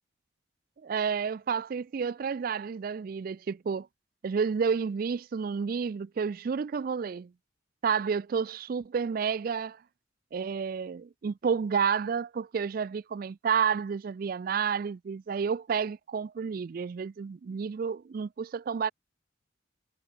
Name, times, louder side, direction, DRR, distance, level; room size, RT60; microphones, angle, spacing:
voice 1, 0.8-3.9 4.2-7.3 7.8-9.8 10.3-18.9, right 6 dB, 45° right, 0.3 m, -30 dB
head